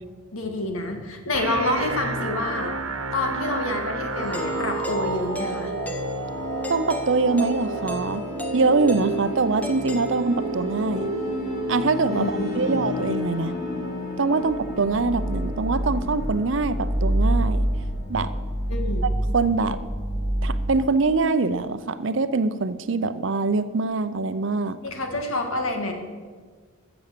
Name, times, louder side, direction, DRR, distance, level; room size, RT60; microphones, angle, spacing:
voice 1, 0.3-2.7 3.1-5.7 12.1-12.8 18.7-19.1 24.8-25.9, left 2 dB, 80° left, 4 dB, 1.9 m, -28 dB
sound 1, 1.3-15.3, right 2 dB, 90° right, 1.1 m, -32 dB
sound 2, 4.1-20.7, equal, 45° left, 4.2 m, -29 dB
Doorbell, 4.3-10.7, left 1 dB, 5° left, 0.9 m, -38 dB
voice 2, 6.7-8.2 8.5-11.1 11.7-13.6 14.2-17.6 18.1-18.3 19.3-19.8 20.4-24.8, right 3 dB, 65° right, 13 dB, 0.6 m, -23 dB
14.0 x 7.1 x 6.7 m, 1.5 s
head